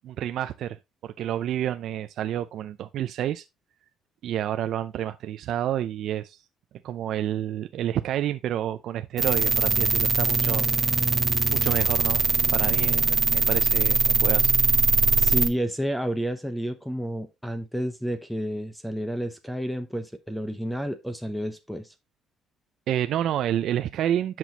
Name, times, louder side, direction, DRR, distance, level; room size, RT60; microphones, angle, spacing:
voice 1, 0.0-3.4 4.2-6.4 6.8-10.7 11.5-12.2 12.5-14.5 22.9-24.4, right 11 dB, 65° right, 0.4 m, -29 dB
sound 1, 9.2-15.5, right 4 dB, 25° right, 0.8 m, -22 dB
voice 2, 15.2-21.9, equal, ahead, 0.8 m, -30 dB
9.2 x 6.0 x 2.9 m
cardioid pair, 125°, 0 cm